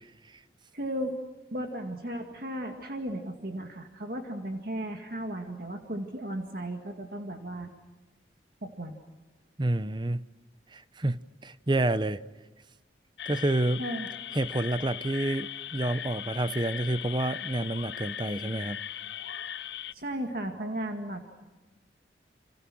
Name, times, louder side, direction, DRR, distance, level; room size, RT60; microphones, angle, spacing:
voice 1, 0.7-1.2 1.5-7.7 8.6-9.0 13.8-14.1 19.9-21.3, right 1 dB, 55° right, 2.2 m, -35 dB
voice 2, 9.6-10.2 10.7-12.2 13.3-13.8 14.3-18.8, right 1 dB, 25° right, 0.8 m, -29 dB
sound 1, 13.2-19.9, left 10 dB, 75° left, 0.8 m, -39 dB
30.0 x 27.0 x 6.3 m
head